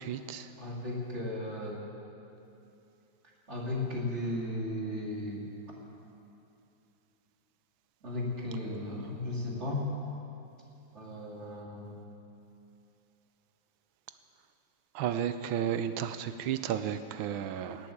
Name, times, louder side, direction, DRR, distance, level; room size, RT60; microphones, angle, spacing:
voice 1, 0.0-0.4 15.0-17.8, right 9 dB, 80° right, 11 dB, 1.4 m, -33 dB
voice 2, 0.6-1.8 3.5-5.4 8.0-9.9 10.9-11.9, left 1 dB, 35° right, -3 dB, 2.9 m, -35 dB
18.0 x 8.5 x 8.6 m, 2.8 s
omnidirectional pair, 2.3 m